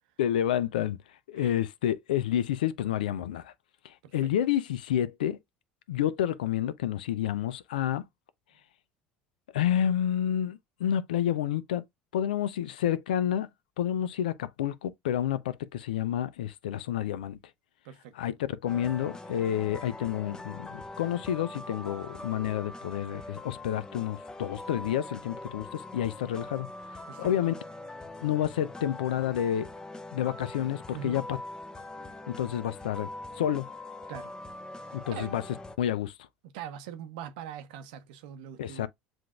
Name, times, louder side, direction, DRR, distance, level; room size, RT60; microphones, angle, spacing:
voice 1, 0.2-1.0 1.3-3.5 3.8-5.4 5.9-8.0 9.5-11.8 12.1-13.5 13.8-17.4 18.1-26.7 27.2-27.5 28.2-29.7 30.1-31.4 32.3-33.1 33.4-33.7 34.9-35.4 35.8-36.1 38.6-38.9, left 10 dB, 85° left, 0.5 m, -29 dB
sound 1, 18.7-35.8, left 2 dB, 15° left, 0.7 m, -43 dB
voice 2, 34.8-35.4 36.4-38.9, right 9 dB, 75° right, 0.8 m, -42 dB
7.5 x 2.6 x 2.4 m
hypercardioid pair, 80°, 5 cm